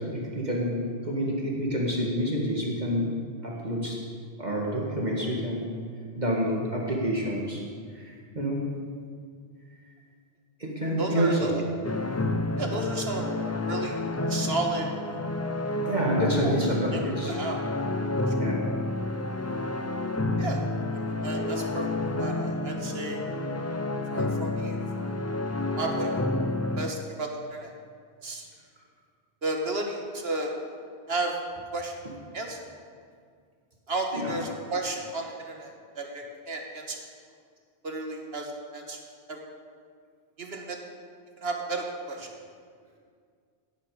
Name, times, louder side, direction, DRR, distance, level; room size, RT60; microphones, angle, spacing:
voice 1, 0.0-3.1 3.4-4.0 4.4-5.7 6.2-7.6 7.9-8.7 10.6-11.6 13.1-13.6 15.9-17.4 18.3-18.7 34.1-34.3, equal, 45° right, -3 dB, 2.1 m, -28 dB
voice 2, 11.0-11.6 12.6-13.3 13.7-14.0 14.3-15.2 16.4-16.6 16.9-17.6 18.3-18.4 20.4-20.6 20.9-21.9 22.2-23.2 24.1-25.1 25.8-26.1 26.8-27.7 28.2-28.5 29.4-30.5 31.1-31.3 31.7-32.0 32.3-32.6 33.9-37.0 37.8-39.0 39.3-39.4 40.4-40.8 41.4-42.3, right 2 dB, 70° right, 2 dB, 1.8 m, -33 dB
sound 1, 11.8-26.9, left 2 dB, 20° left, 0.5 m, -30 dB
17.0 x 10.5 x 5.0 m, 2.1 s
omnidirectional pair, 1.1 m